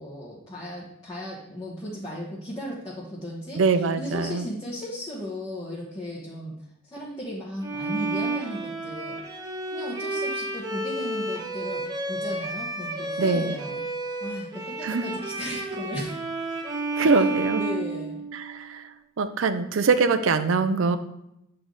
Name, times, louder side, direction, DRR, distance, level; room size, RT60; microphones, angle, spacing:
voice 1, 0.0-3.6 4.0-6.5 6.8-9.2 9.7-13.8 14.2-16.1 17.0-17.3 17.6-18.3, equal, 20° left, -8 dB, 1.2 m, -36 dB
voice 2, 3.5-4.5 13.2-13.5 14.8-15.0 16.9-17.6 18.3-18.9 19.2-21.0, right 4 dB, 70° right, 10 dB, 0.5 m, -23 dB
Bowed string instrument, 7.6-18.6, right 2 dB, 20° right, 0.6 m, -31 dB
7.9 x 3.3 x 3.9 m, 0.81 s
head